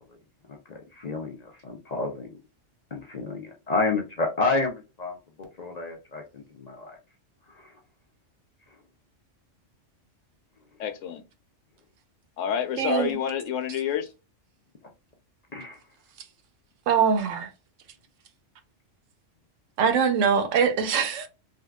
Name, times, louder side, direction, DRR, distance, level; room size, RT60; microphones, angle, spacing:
voice 1, 0.5-2.4 2.9-7.0 7.5-7.7 15.5-15.8, left 3 dB, 55° left, 0.4 m, -30 dB
voice 2, 10.8-11.2 12.4-14.1, left 8 dB, 85° left, 1.0 m, -28 dB
voice 3, 12.8-13.2 16.9-17.5 19.8-21.3, right 6 dB, 80° right, 1.0 m, -23 dB
3.5 x 2.3 x 2.2 m
omnidirectional pair, 1.3 m